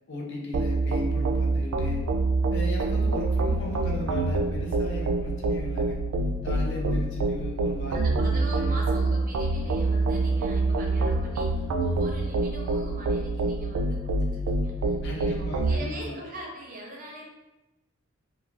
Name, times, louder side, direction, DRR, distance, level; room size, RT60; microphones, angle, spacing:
voice 1, 0.1-2.0 2.5-6.0 6.4-8.8 15.0-16.2, left 1 dB, 60° left, -1 dB, 0.6 m, -36 dB
sound 1, 0.5-15.8, right 2 dB, 85° right, 0.3 m, -26 dB
sound 2, 3.1-13.0, right 3 dB, 10° left, 0.4 m, -42 dB
voice 2, 7.9-17.2, right 1 dB, 40° right, -1 dB, 0.6 m, -41 dB
2.4 x 2.2 x 3.1 m, 1.0 s
head